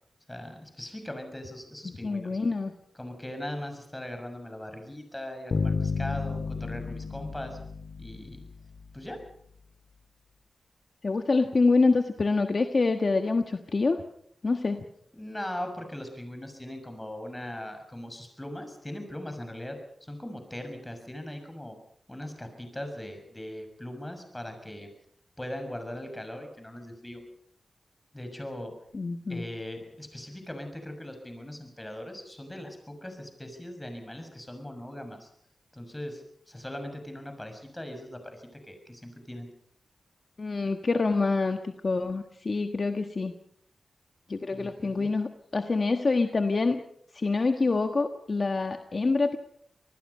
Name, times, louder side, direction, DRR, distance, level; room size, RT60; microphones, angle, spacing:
voice 1, 0.3-2.4 2.9-7.6 8.0-8.4 8.9-9.2 15.1-21.8 22.1-24.9 25.4-27.2 28.1-28.7 29.3-35.3 35.7-39.5 44.5-45.1, left 1 dB, 15° left, 6 dB, 6.5 m, -40 dB
voice 2, 1.8-2.7 11.0-14.0 14.4-14.8 28.9-29.4 40.4-43.3 44.3-46.8 47.1-49.4, left 3 dB, 50° left, 6 dB, 1.4 m, -26 dB
sound 1, 5.5-8.9, left 4 dB, 65° left, 2.4 m, -32 dB
26.5 x 19.5 x 5.6 m, 0.69 s
cardioid pair, 70°, 0 cm